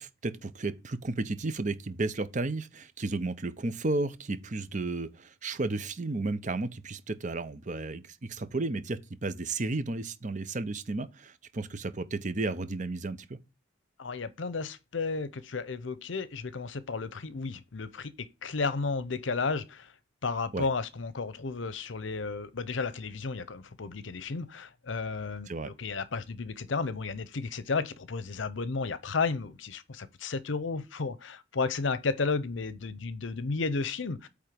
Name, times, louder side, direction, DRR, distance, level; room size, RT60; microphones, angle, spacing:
voice 1, 0.0-13.4 20.5-20.7 25.5-25.7, right 2 dB, 40° right, 0.7 m, -33 dB
voice 2, 14.0-19.9 20.2-34.3, left 4 dB, 75° left, 0.7 m, -33 dB
8.7 x 3.5 x 5.1 m
head